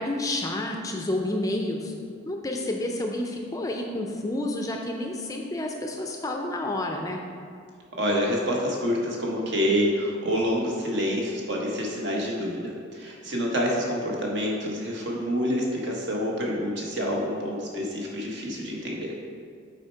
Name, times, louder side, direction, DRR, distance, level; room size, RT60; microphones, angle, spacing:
voice 1, 0.0-1.9 2.3-7.2, left 1 dB, 15° left, 2 dB, 0.4 m, -29 dB
voice 2, 8.0-19.1, equal, 60° right, -2 dB, 1.1 m, -27 dB
6.3 x 4.3 x 4.5 m, 2.2 s
head